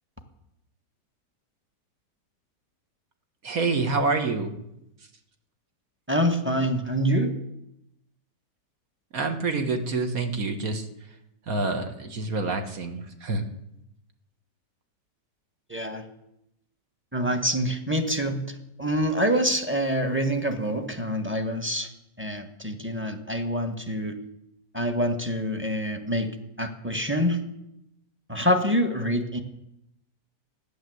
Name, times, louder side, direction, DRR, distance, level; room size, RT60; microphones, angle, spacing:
voice 1, 3.4-4.5 9.1-10.9 11.5-13.4, right 3 dB, 55° right, 6 dB, 1.9 m, -27 dB
voice 2, 6.1-7.3 15.7-16.0 17.1-18.5 18.8-21.9 22.2-24.1 24.7-26.3 26.6-27.4 28.3-29.4, equal, 10° right, 5 dB, 1.3 m, -26 dB
14.5 x 10.5 x 7.9 m, 0.84 s
omnidirectional pair, 1.9 m